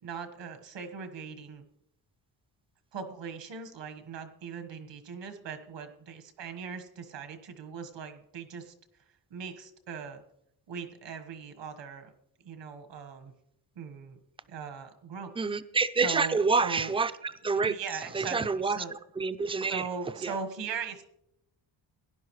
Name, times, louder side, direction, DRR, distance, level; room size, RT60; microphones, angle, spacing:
voice 1, 0.0-1.6 2.9-8.7 9.3-10.2 10.7-12.1 12.4-13.3 13.7-14.2 14.5-15.3 16.0-16.9 17.6-18.9 19.7-21.0, right 6 dB, 80° right, 1.5 m, -40 dB
voice 2, 15.4-17.7 18.1-19.9 20.2-20.3, right 4 dB, 15° right, 0.3 m, -28 dB
17.0 x 11.0 x 3.2 m
wide cardioid pair, 145°, 43 cm